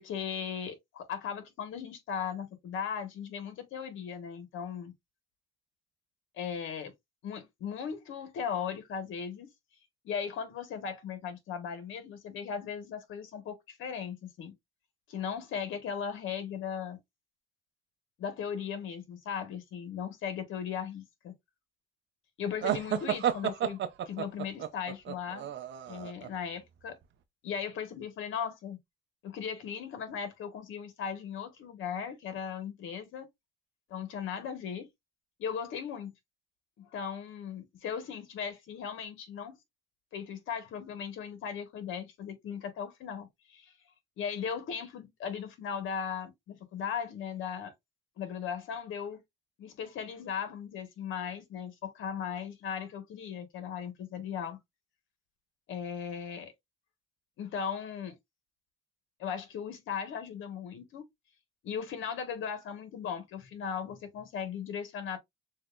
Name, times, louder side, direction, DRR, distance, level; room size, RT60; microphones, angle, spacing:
voice 1, 0.0-4.9 6.4-6.9 7.2-9.5 10.0-14.5 15.1-17.0 18.2-21.3 22.4-23.8 24.1-25.5 25.9-27.0 27.4-28.8 29.2-33.3 33.9-34.9 35.4-36.1 36.8-39.6 40.1-43.7 44.2-47.7 48.2-49.2 49.6-54.6 55.7-56.5 57.4-58.2 59.2-61.1 61.6-65.2, left 7 dB, 80° left, 1.7 m, -37 dB
sound 1, 22.6-26.3, right 10 dB, 65° right, 0.8 m, -32 dB
6.4 x 2.8 x 2.5 m
cardioid pair, 90°, 20 cm